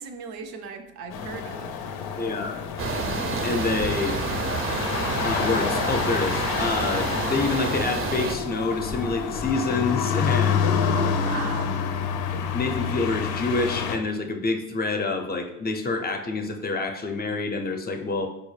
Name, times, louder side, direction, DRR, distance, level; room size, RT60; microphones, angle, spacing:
voice 1, 0.0-1.8 10.9-11.8, right 5 dB, 80° right, 6 dB, 0.6 m, -37 dB
sound 1, 1.1-14.0, left 7 dB, 75° left, 0.5 m, -28 dB
voice 2, 2.1-2.6 3.4-4.2 5.2-10.9 12.3-18.3, left 3 dB, 25° left, 5 dB, 0.5 m, -27 dB
sound 2, 2.8-8.3, right 3 dB, 35° right, 0.5 m, -28 dB
4.7 x 2.1 x 3.2 m, 0.89 s
supercardioid pair, 75°, 37 cm